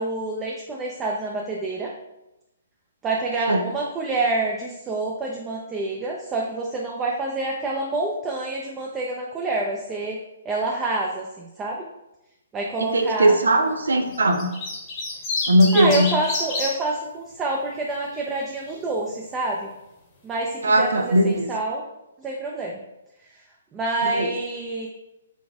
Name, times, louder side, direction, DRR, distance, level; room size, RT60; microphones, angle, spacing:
voice 1, 0.0-1.9 3.0-10.2 10.5-11.8 12.5-13.4 15.7-19.7 20.2-21.8 22.2-22.8 23.7-24.9, right 2 dB, 15° right, -2 dB, 0.5 m, -27 dB
voice 2, 12.8-14.5 15.5-16.1 20.6-21.5 24.0-24.3, right 1 dB, 70° right, 5 dB, 0.5 m, -19 dB
sound 1, 14.1-16.7 18.0-18.4, left 3 dB, 30° left, 1.0 m, -28 dB
4.0 x 3.4 x 3.5 m, 0.92 s
figure-of-eight pair, 125°, 0 cm